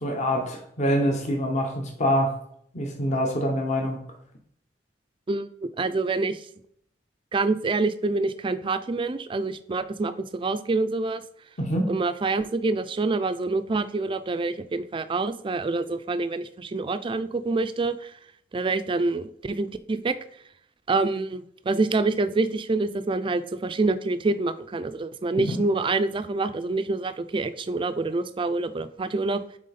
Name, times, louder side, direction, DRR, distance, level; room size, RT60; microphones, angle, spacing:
voice 1, 0.0-2.3 2.7-4.0 11.6-11.9 25.3-25.6, equal, 40° left, 2 dB, 0.9 m, -25 dB
voice 2, 5.3-6.4 7.3-11.2 11.9-18.1 18.5-20.1 20.9-29.4, right 3 dB, 30° right, 12 dB, 0.4 m, -26 dB
7.5 x 3.5 x 4.1 m, 0.68 s
head